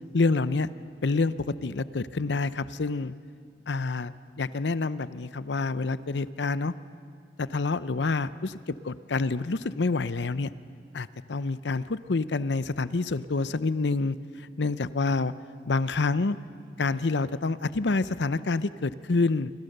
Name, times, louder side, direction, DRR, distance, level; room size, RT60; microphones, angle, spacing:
voice 1, 0.1-0.7 1.0-3.1 3.7-6.7 7.4-8.6 8.8-10.5 10.9-14.2 14.6-15.3 15.7-16.4 16.8-19.5, left 3 dB, 75° left, 15 dB, 0.7 m, -27 dB
27.5 x 25.0 x 6.7 m, 2.2 s
head